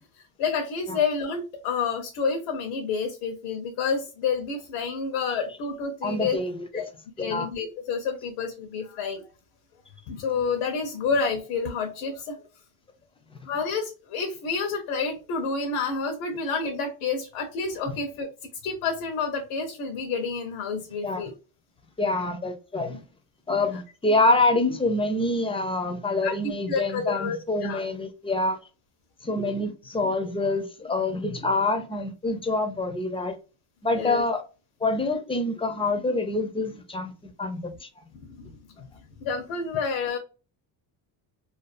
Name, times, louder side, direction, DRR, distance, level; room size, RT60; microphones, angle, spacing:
voice 1, 0.4-6.4 6.7-6.9 7.2-9.2 10.1-12.4 13.4-18.3 18.6-21.3 26.2-26.3 26.7-27.8 34.0-34.2 38.1-38.5 39.2-40.2, left 5 dB, 85° left, 0.7 m, -29 dB
voice 2, 6.0-6.8 7.2-7.5 17.9-18.0 21.0-21.2 22.0-23.0 23.5-28.6 29.2-33.4 33.8-34.4 34.8-38.0 38.8-38.9, left 2 dB, 15° left, 0.4 m, -26 dB
2.5 x 2.4 x 2.4 m
cardioid pair, 105°, 46 cm